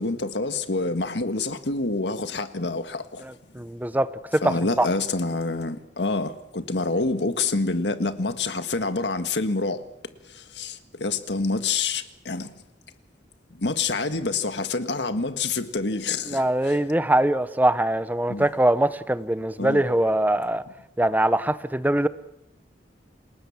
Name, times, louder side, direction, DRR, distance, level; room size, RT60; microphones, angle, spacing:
voice 1, 0.0-3.2 4.4-9.9 10.6-12.5 13.6-16.8 18.3-18.5 19.6-19.8, left 3 dB, 80° left, 1.7 m, -27 dB
voice 2, 3.2-4.1 4.3-4.9 16.3-20.6 21.0-22.1, right 1 dB, 10° right, 0.8 m, -22 dB
28.0 x 19.5 x 7.3 m
head